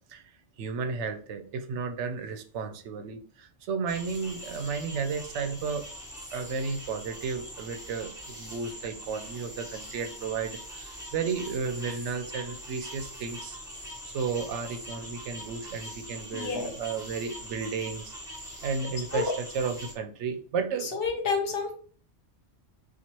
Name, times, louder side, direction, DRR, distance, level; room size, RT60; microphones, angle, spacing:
voice 1, 0.6-5.9 6.3-13.6 14.1-18.2 18.6-20.9, right 5 dB, 80° right, 0.9 m, -33 dB
sound 1, 3.9-19.9, equal, 5° right, 0.8 m, -42 dB
voice 2, 16.3-16.7 19.1-19.3 20.8-21.7, left 5 dB, 60° left, 1.0 m, -29 dB
4.3 x 2.3 x 2.9 m
omnidirectional pair, 1.2 m